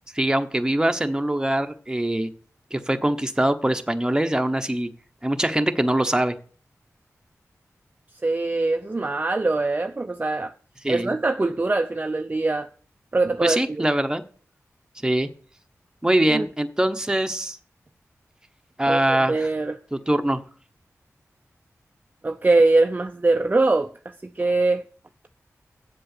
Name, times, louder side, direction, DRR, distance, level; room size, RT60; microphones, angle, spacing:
voice 1, 0.1-2.3 2.7-4.9 5.2-6.3 10.8-11.1 13.4-14.2 15.0-15.3 16.0-17.6 18.8-19.5 19.9-20.4, right 1 dB, 10° right, 1.0 m, -23 dB
voice 2, 8.2-10.5 10.9-12.7 13.1-13.9 16.3-16.4 18.9-19.8 22.2-23.9 24.2-24.8, right 2 dB, 30° right, 0.5 m, -22 dB
7.7 x 6.8 x 6.7 m
wide cardioid pair, 65°, 6 cm